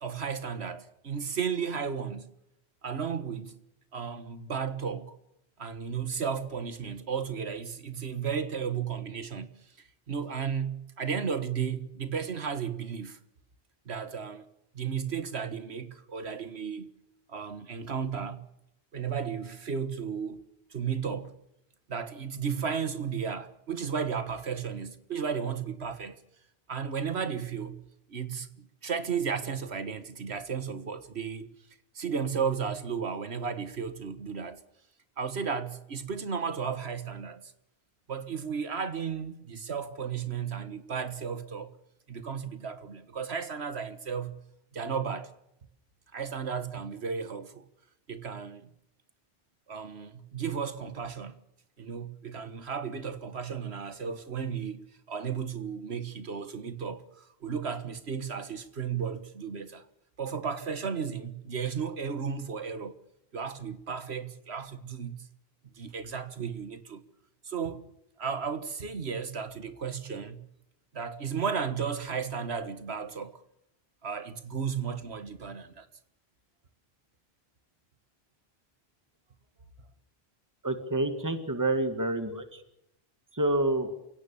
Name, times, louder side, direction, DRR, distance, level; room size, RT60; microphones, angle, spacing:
voice 1, 0.0-2.3 2.8-3.5 3.9-5.2 5.6-13.2 13.9-14.5 14.7-16.9 17.3-18.5 18.9-20.5 20.7-21.4 21.9-26.2 26.7-27.8 28.1-31.5 32.0-34.6 35.2-37.5 38.1-41.7 42.1-44.4 44.7-45.3 46.1-47.7 48.1-48.7 49.7-51.4 51.8-59.9 60.2-63.0 63.3-65.2 65.8-67.0 67.4-67.8 68.2-70.4 70.9-73.4 74.0-75.9, right 6 dB, 85° right, 1.7 m, -34 dB
voice 2, 80.6-82.6 83.3-83.9, right 2 dB, 15° right, 1.9 m, -28 dB
28.5 x 17.0 x 7.1 m
omnidirectional pair, 1.1 m